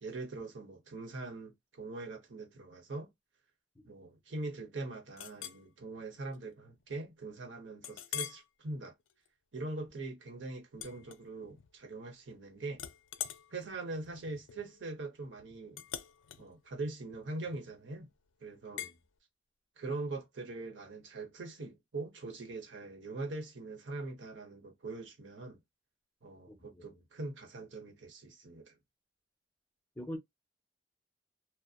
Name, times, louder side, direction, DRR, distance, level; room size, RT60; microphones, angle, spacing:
voice 1, 0.0-3.1 3.8-8.9 9.5-12.8 13.5-15.8 16.4-18.1 18.4-18.9 19.8-25.6 26.2-28.8, right 2 dB, 75° right, 0.8 m, -42 dB
Chink clink, 5.2-5.6 6.2-6.4 6.8-6.9 7.8-8.5 9.0-9.3 10.7-11.7 12.0-12.4 12.7-17.9 18.8-19.0, left 10 dB, 90° left, 0.4 m, -44 dB
voice 2, 18.7-18.9 26.5-26.6 30.0-30.2, equal, 10° left, 0.7 m, -41 dB
2.7 x 2.0 x 2.3 m
head